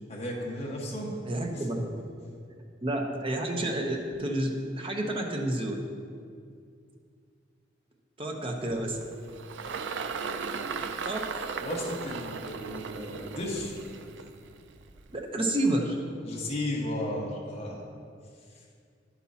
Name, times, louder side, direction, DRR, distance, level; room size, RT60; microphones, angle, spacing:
voice 1, 0.1-1.2 1.5-1.6 11.6-13.8 16.2-17.9 18.5-18.6, left 1 dB, 35° left, -3 dB, 1.4 m, -34 dB
voice 2, 1.3-1.9 2.8-5.8 8.2-9.0 11.0-11.5 15.1-16.0, right 1 dB, 30° right, 1 dB, 0.9 m, -30 dB
Engine, 8.7-15.3, right 5 dB, 65° right, 0.4 m, -37 dB
10.5 x 8.2 x 2.9 m, 2.3 s
head